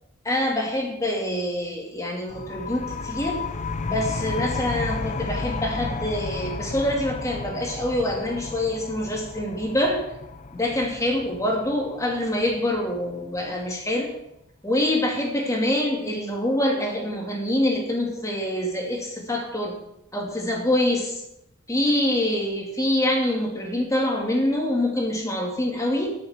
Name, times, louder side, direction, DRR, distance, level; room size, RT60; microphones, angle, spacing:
voice 1, 0.2-3.3 3.8-10.0 10.5-14.1 14.6-19.7 20.1-21.2 21.7-26.1, left 1 dB, 15° left, 0 dB, 2.2 m, -25 dB
sound 1, 2.3-13.7, left 4 dB, 35° left, 0.6 m, -33 dB
13.0 x 6.6 x 5.7 m, 0.83 s
head